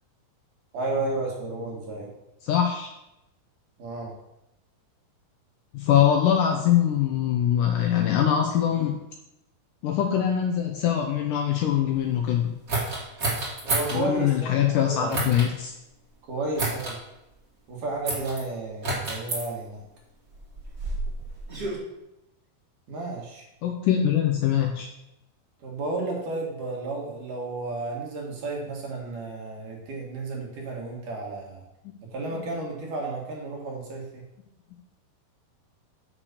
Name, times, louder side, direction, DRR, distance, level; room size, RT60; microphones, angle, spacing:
voice 1, 0.7-2.1 3.8-4.1 13.6-15.2 16.3-17.0 17.7-19.8 22.9-23.5 25.6-31.6 32.1-34.2, right 2 dB, 60° right, -1 dB, 2.9 m, -32 dB
voice 2, 2.4-2.9 5.7-9.0 9.8-12.5 13.9-15.7 23.6-24.9 32.3-32.4, left 10 dB, 80° left, 3 dB, 1.9 m, -23 dB
sound 1, 12.7-14.0 15.1-15.5 16.6-17.0 18.1-18.4 18.8-19.4 20.3-21.8, right 2 dB, 30° right, 2.0 m, -29 dB
6.8 x 6.0 x 6.6 m, 0.88 s
omnidirectional pair, 4.5 m